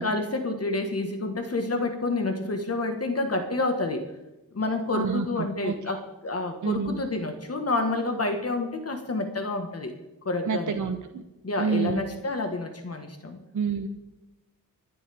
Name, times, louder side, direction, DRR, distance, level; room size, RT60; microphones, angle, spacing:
voice 1, 0.0-4.0 4.5-9.9 10.2-10.8 11.4-13.4, left 2 dB, 40° left, 5 dB, 1.5 m, -29 dB
voice 2, 4.9-5.3 5.6-5.7 6.6-7.0 10.5-11.2 11.6-12.0 13.5-13.9, right 6 dB, 55° right, 6 dB, 0.9 m, -27 dB
25.5 x 11.0 x 3.5 m, 1.0 s
wide cardioid pair, 115°, 36 cm